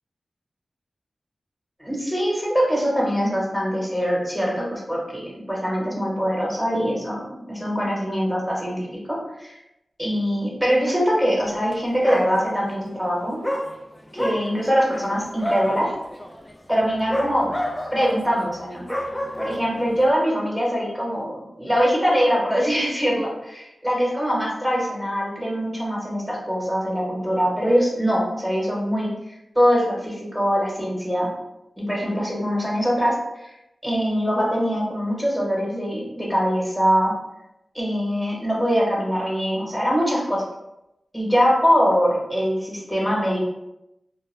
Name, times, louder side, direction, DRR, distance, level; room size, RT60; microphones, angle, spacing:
voice 1, 1.8-5.2 5.5-9.5 10.0-13.4 14.1-15.9 16.7-17.5 17.9-18.9 19.4-21.3 21.6-29.1 29.5-31.3 31.8-33.1 33.4-33.5 33.8-37.2 37.7-40.4 41.1-43.4, equal, ahead, -4 dB, 1.1 m, -23 dB
Dog, 11.6-11.8 12.0-12.8 13.4-20.1, equal, 15° left, 0.3 m, -30 dB
2.3 x 2.1 x 3.2 m, 0.87 s
cardioid pair, 45°, 0 cm